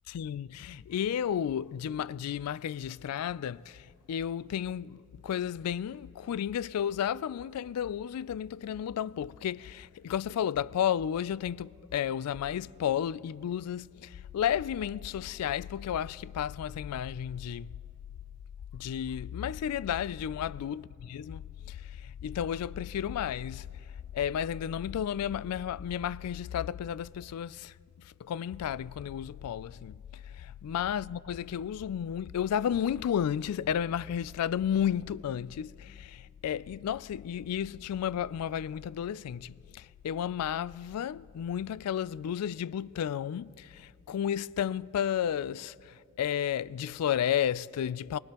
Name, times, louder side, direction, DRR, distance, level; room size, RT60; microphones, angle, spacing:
voice 1, 0.1-17.7 18.7-20.8 21.1-23.7 24.1-48.2, left 9 dB, 85° left, 0.3 m, -32 dB
23.5 x 19.0 x 3.0 m
head